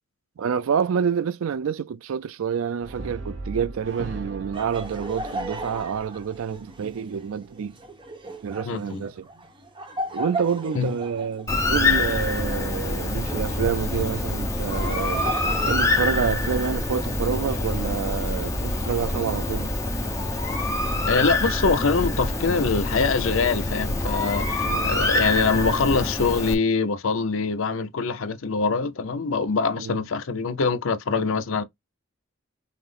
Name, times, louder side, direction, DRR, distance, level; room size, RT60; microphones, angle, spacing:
voice 1, 0.4-7.8 8.4-9.3 10.1-15.3 15.6-19.7 24.6-25.0 29.8-30.0, right 7 dB, 75° right, 0.4 m, -28 dB
Brass instrument, 2.8-7.1, right 2 dB, 55° right, 0.8 m, -38 dB
Laughter, 4.5-13.6 14.5-16.8, right 1 dB, 25° right, 0.8 m, -36 dB
voice 2, 8.6-9.0 10.7-10.9 21.1-31.6, left 4 dB, 70° left, 0.6 m, -24 dB
Bird, 11.5-26.5, left 2 dB, 15° left, 0.8 m, -26 dB
5.6 x 2.0 x 3.3 m
head